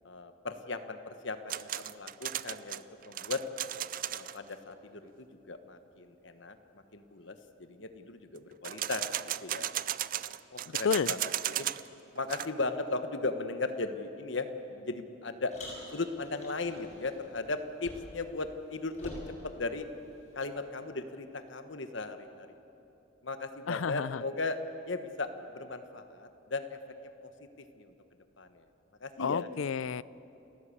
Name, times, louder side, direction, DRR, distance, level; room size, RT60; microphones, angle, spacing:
voice 1, 0.0-3.4 4.1-9.7 10.5-11.7 12.1-15.5 15.9-19.9 20.3-22.6 23.2-24.6 24.8-26.8 27.2-27.3 27.8-27.9 28.4-28.7 29.0-29.5, left 3 dB, 65° left, 8 dB, 1.3 m, -37 dB
sound 1, 1.5-4.4 8.6-11.9 12.2-12.5, right 12 dB, 40° right, 0.4 m, -35 dB
voice 2, 10.7-11.1 23.7-24.2 29.2-30.0, left 6 dB, 80° left, 20 dB, 0.4 m, -31 dB
Car, 15.5-18.3 18.6-20.4, left 1 dB, 35° left, 6.3 m, -48 dB
29.5 x 13.5 x 8.7 m, 3.0 s
head